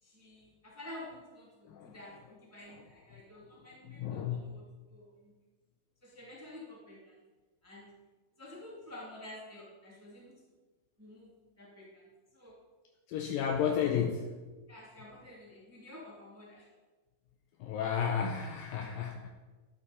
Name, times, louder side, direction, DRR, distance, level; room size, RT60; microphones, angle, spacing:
voice 1, 0.0-4.6 4.9-5.3 6.0-7.1 7.6-7.9 8.4-10.3 11.0-12.5 14.7-16.7, left 1 dB, 5° right, -5 dB, 1.6 m, -50 dB
voice 2, 4.0-4.5 13.1-14.3 17.6-19.3, left 8 dB, 80° left, 4 dB, 2.1 m, -32 dB
12.0 x 8.9 x 4.2 m, 1.3 s
omnidirectional pair, 4.7 m